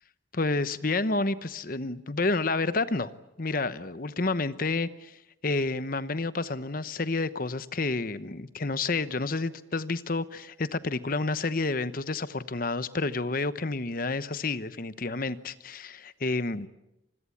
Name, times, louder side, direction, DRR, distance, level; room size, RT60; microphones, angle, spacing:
voice 1, 0.3-3.1 3.4-16.7, left 3 dB, 50° left, 14 dB, 1.0 m, -30 dB
26.0 x 21.0 x 8.6 m, 0.90 s
head